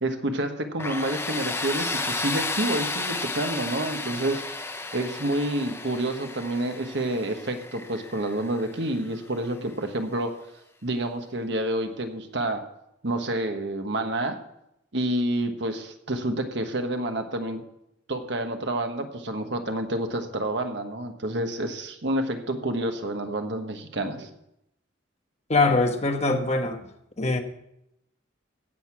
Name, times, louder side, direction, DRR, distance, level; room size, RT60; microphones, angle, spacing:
voice 1, 0.0-4.4 4.9-10.3 10.8-12.6 13.0-14.4 14.9-17.6 18.1-24.3, right 1 dB, 60° right, 6 dB, 1.3 m, -28 dB
Tools, 0.8-9.6, left 3 dB, 15° left, 0.6 m, -33 dB
voice 2, 25.5-26.8 27.2-27.4, left 3 dB, 35° left, 5 dB, 1.1 m, -22 dB
16.0 x 6.6 x 6.0 m, 0.82 s
head